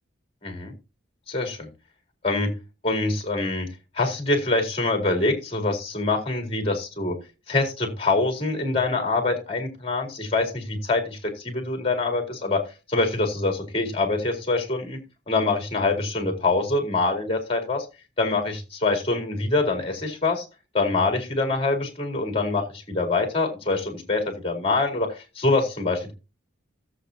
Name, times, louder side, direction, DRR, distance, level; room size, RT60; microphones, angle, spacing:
voice 1, 0.4-0.7 1.3-1.7 2.2-2.5 2.8-3.7 3.9-7.2 7.5-12.6 12.9-15.0 15.3-17.9 18.2-20.5 20.7-26.1, left 3 dB, 30° left, 4 dB, 4.3 m, -25 dB
17.0 x 8.3 x 2.9 m, 0.30 s
head